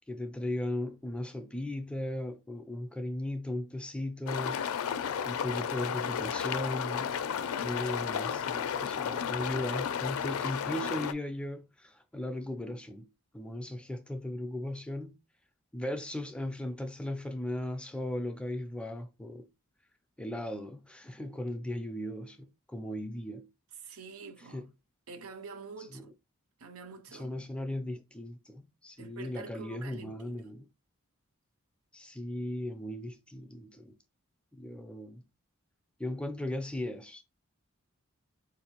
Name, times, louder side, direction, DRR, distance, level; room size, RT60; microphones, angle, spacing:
voice 1, 0.1-4.6 5.2-7.1 7.6-13.1 13.3-15.2 15.7-19.5 20.2-23.5 24.5-24.7 25.9-26.0 27.1-30.7 31.9-34.0 34.5-35.2 36.0-37.2, left 1 dB, 5° left, 0.3 m, -37 dB
sound 1, 4.3-11.1, left 8 dB, 85° left, 0.4 m, -33 dB
voice 2, 23.8-24.7 25.1-26.1 26.6-27.5 29.0-30.4, right 4 dB, 80° right, 0.5 m, -47 dB
4.3 x 2.6 x 2.9 m
head